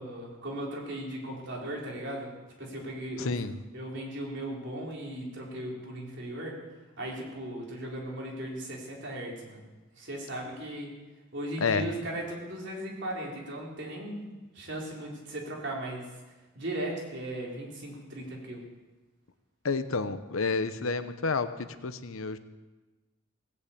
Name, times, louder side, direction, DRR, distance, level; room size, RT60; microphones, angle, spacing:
voice 1, 0.0-3.4 3.7-6.6 7.0-9.6 9.9-10.9 11.3-14.3 14.5-16.1 16.6-18.7, right 1 dB, 55° right, -2 dB, 3.8 m, -37 dB
voice 2, 3.2-3.5 11.6-11.8 19.6-22.4, left 4 dB, 75° left, 11 dB, 0.9 m, -30 dB
17.5 x 8.6 x 8.5 m, 1.2 s
head